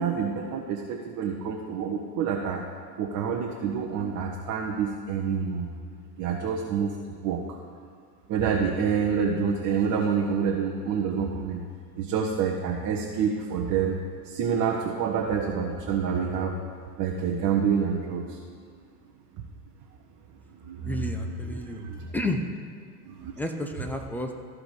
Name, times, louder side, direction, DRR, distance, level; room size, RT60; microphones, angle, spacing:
voice 1, 0.0-2.6 3.0-5.7 6.2-6.9 7.2-7.6 8.3-11.6 12.0-14.0 14.2-16.6 17.0-18.4 20.6-20.9 21.7-22.0 23.0-23.3, right 6 dB, 40° right, 0 dB, 1.1 m, -27 dB
voice 2, 20.8-21.8 22.1-22.4 23.4-24.3, left 1 dB, 5° left, 4 dB, 0.9 m, -31 dB
14.5 x 5.1 x 4.9 m, 2.1 s
hypercardioid pair, 85°, 47 cm